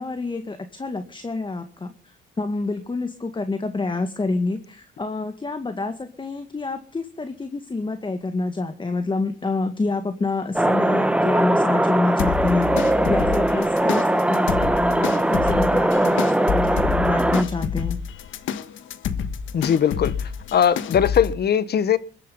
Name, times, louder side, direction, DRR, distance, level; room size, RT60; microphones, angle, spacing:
voice 1, 0.0-18.0, left 3 dB, 25° left, 2.0 m, -28 dB
sound 1, 10.5-17.4, right 1 dB, 5° right, 1.2 m, -20 dB
sound 2, 12.2-21.3, left 7 dB, 75° left, 1.6 m, -29 dB
voice 2, 19.5-22.0, left 8 dB, 55° left, 1.3 m, -20 dB
22.0 x 12.0 x 5.4 m
cardioid pair, 90°, 20 cm